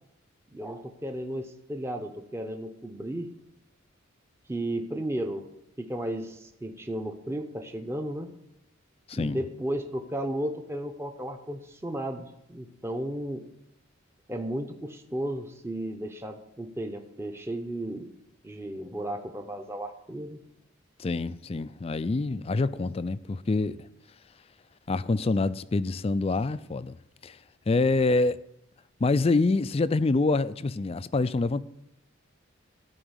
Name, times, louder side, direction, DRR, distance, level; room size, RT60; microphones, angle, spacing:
voice 1, 0.5-3.3 4.5-5.4 5.8-8.3 9.1-13.4 14.3-18.1 18.4-20.4, right 1 dB, 10° right, 0.7 m, -34 dB
voice 2, 9.1-9.4 21.0-23.9 24.9-27.0 27.2-28.4 29.0-31.6, left 3 dB, 30° left, 0.3 m, -26 dB
14.0 x 5.0 x 8.0 m
head